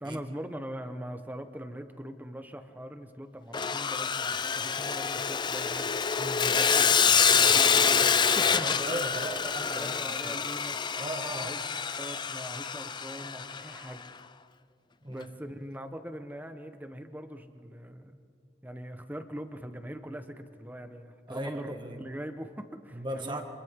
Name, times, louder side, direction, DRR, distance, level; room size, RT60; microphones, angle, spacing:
voice 1, 0.0-8.8 9.3-10.8 11.3-11.7 12.0-14.0 15.1-18.2 18.6-21.7 22.0-23.4, equal, 10° right, 8 dB, 1.1 m, -42 dB
Sawing, 3.5-13.8, left 6 dB, 25° left, 0.4 m, -26 dB
voice 2, 6.2-6.6 8.6-10.4 11.0-11.6 15.0-15.3 21.3-22.0 22.9-23.4, right 1 dB, 25° right, 4 dB, 1.8 m, -37 dB
29.0 x 26.0 x 3.7 m, 2.4 s
head